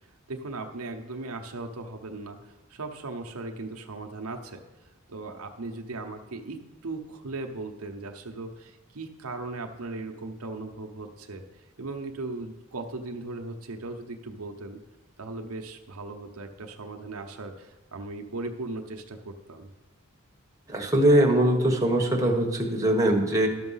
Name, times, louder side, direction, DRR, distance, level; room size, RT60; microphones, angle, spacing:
voice 1, 0.3-4.6 5.1-11.4 11.8-14.8 15.2-19.7, right 3 dB, 80° right, 4 dB, 0.8 m, -38 dB
voice 2, 20.7-23.5, right 1 dB, 15° right, 1 dB, 1.2 m, -22 dB
12.0 x 6.1 x 5.6 m, 1.2 s
head